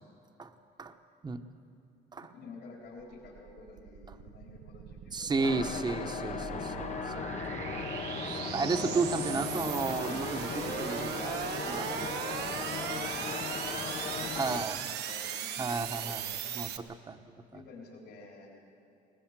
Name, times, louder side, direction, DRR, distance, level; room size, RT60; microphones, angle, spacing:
voice 1, 2.2-5.6 9.1-9.6 12.5-16.5 17.5-18.5, left 3 dB, 75° left, -5 dB, 4.1 m, -50 dB
sound 1, 3.0-16.8, right 9 dB, 80° right, 1.1 m, -38 dB
voice 2, 5.1-7.2 7.6-8.0 8.3-12.1 14.4-14.8 15.6-16.2 16.5-17.2 17.5-17.6, right 4 dB, 25° right, 8 dB, 1.1 m, -33 dB
sound 2, 5.4-14.7, left 7 dB, 45° left, 0.8 m, -38 dB
20.0 x 20.0 x 7.5 m, 2.6 s
cardioid pair, 110°, 17 cm